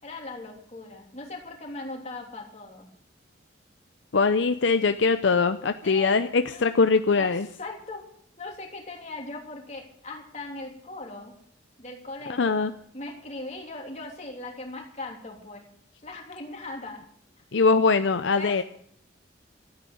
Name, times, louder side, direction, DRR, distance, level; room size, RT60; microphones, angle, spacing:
voice 1, 0.0-2.9 5.8-6.1 6.5-6.6 7.1-8.0 8.4-11.3 11.8-15.6 16.0-17.0 18.4-18.6, left 2 dB, 35° left, 0 dB, 3.1 m, -39 dB
voice 2, 4.1-7.5 12.4-12.7 17.5-18.6, left 4 dB, 70° left, 9 dB, 0.6 m, -22 dB
13.0 x 9.3 x 8.5 m, 0.63 s
head